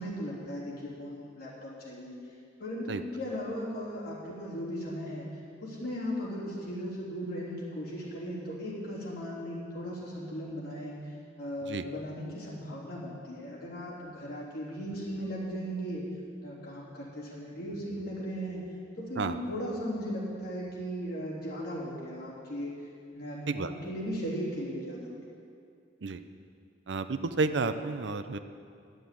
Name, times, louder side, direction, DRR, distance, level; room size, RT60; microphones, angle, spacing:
voice 1, 0.0-2.1 2.6-5.2 5.6-11.1 11.4-16.0 16.4-18.7 19.0-22.7 23.1-25.2, equal, 55° left, -6 dB, 3.4 m, -37 dB
voice 2, 26.9-28.4, right 3 dB, 80° right, 10 dB, 0.6 m, -31 dB
11.0 x 7.7 x 8.4 m, 2.4 s
head